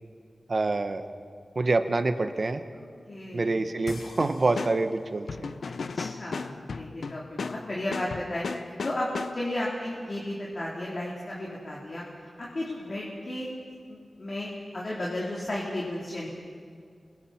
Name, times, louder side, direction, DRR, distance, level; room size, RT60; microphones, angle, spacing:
voice 1, 0.5-1.0 1.5-2.6 3.3-5.5, right 3 dB, 50° right, 8 dB, 1.3 m, -26 dB
voice 2, 2.7-3.5 5.6-9.1 9.3-12.0 12.4-13.5 13.9-16.3, left 1 dB, 45° left, -5 dB, 3.8 m, -34 dB
sound 1, 3.9-9.6, left 4 dB, 85° left, 0.6 m, -36 dB
28.0 x 23.0 x 4.5 m, 2.2 s
wide cardioid pair, 75°, 0 cm